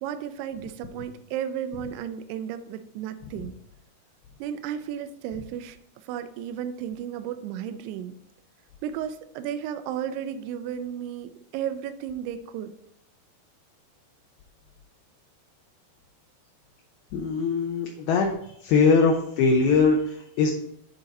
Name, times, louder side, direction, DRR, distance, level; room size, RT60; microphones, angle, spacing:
voice 1, 0.0-3.5 4.4-8.1 8.8-12.7, right 9 dB, 80° right, 9 dB, 2.5 m, -34 dB
voice 2, 17.1-18.3 18.6-20.5, left 4 dB, 75° left, 0 dB, 2.5 m, -21 dB
11.5 x 3.9 x 4.1 m, 0.70 s
omnidirectional pair, 4.9 m